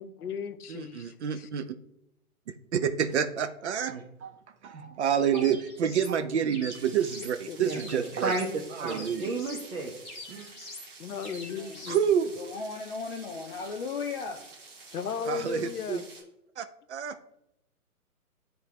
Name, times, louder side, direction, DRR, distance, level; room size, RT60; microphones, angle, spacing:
voice 1, 0.0-1.5 7.5-7.6 11.0-12.0 14.9-16.0, left 6 dB, 85° left, 12 dB, 0.7 m, -36 dB
voice 2, 0.7-1.6 2.7-3.9 5.0-8.3 8.8-9.3 11.9-12.3 15.3-16.0 16.6-17.2, right 8 dB, 50° right, 10 dB, 0.5 m, -28 dB
voice 3, 3.9-4.3 4.6-5.0 5.3-5.4 7.6-8.5 8.8-9.9 10.3-10.5, right 3 dB, 70° right, -2 dB, 1.2 m, -34 dB
sound 1, 5.3-6.2 6.5-7.3 7.7-8.5 8.9-9.7 10.0-10.9 11.2-12.1, left 2 dB, 15° left, 1.3 m, -44 dB
sound 2, 6.7-16.2, right 3 dB, 35° right, 1.5 m, -50 dB
voice 4, 11.2-12.0 12.4-14.4, left 4 dB, 40° left, 1 dB, 0.6 m, -37 dB
9.6 x 3.4 x 3.0 m, 0.81 s
hypercardioid pair, 135°, 45 cm